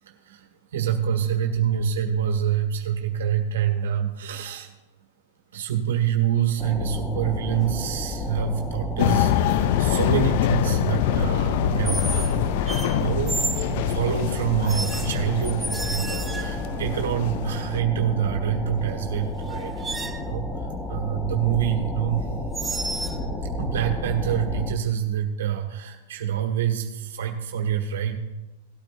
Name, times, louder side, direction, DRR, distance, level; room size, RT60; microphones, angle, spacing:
voice 1, 0.0-4.7 5.5-12.3 12.6-13.4 13.6-22.3 23.6-28.2, right 9 dB, 80° right, 2 dB, 1.6 m, -26 dB
sound 1, 6.6-24.7, left 1 dB, 15° left, 1.3 m, -32 dB
sound 2, 7.5-7.9 9.6-10.0 11.9-12.4 12.7-13.7 14.7-16.7 18.9-19.0 19.4-20.3 22.5-23.2, right 2 dB, 10° right, 0.6 m, -32 dB
sound 3, 9.0-17.8, left 11 dB, 55° left, 0.5 m, -25 dB
18.0 x 9.1 x 2.6 m, 1.1 s
hypercardioid pair, 130°, 0 cm